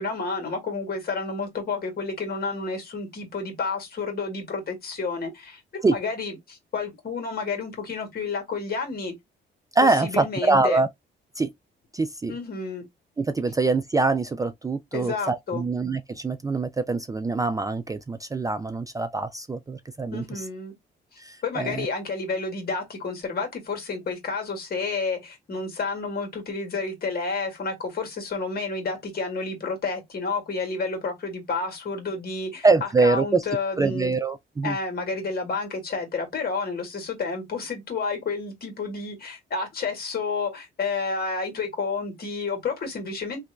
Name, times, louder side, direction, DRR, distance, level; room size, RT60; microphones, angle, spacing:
voice 1, 0.0-9.1 9.8-10.8 12.3-12.9 14.9-15.6 20.1-20.7 21.1-34.1 34.6-43.4, left 4 dB, 50° left, 1.8 m, -30 dB
voice 2, 9.7-10.9 11.4-11.5 11.9-12.3 13.2-20.4 21.2-21.9 32.6-33.4 33.8-34.8, right 3 dB, 15° right, 0.3 m, -24 dB
2.9 x 2.6 x 3.3 m
cardioid pair, 90°, 20 cm